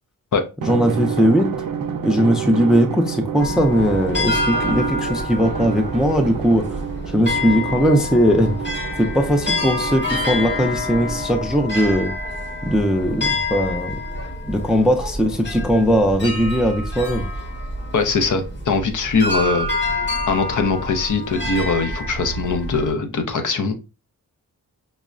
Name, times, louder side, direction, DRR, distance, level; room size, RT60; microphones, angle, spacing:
voice 1, 0.6-1.5 2.0-6.7 7.1-8.5 9.0-12.1 12.6-14.0 14.5-17.3, equal, ahead, 5 dB, 0.3 m, -19 dB
Drum, 0.6-11.6, right 7 dB, 80° right, 0.5 m, -29 dB
sound 1, 3.4-22.9, left 1 dB, 35° left, 0.9 m, -27 dB
voice 2, 17.9-23.7, left 4 dB, 65° left, 6 dB, 0.6 m, -22 dB
5.2 x 2.0 x 2.4 m, 0.30 s
wide cardioid pair, 160°, 33 cm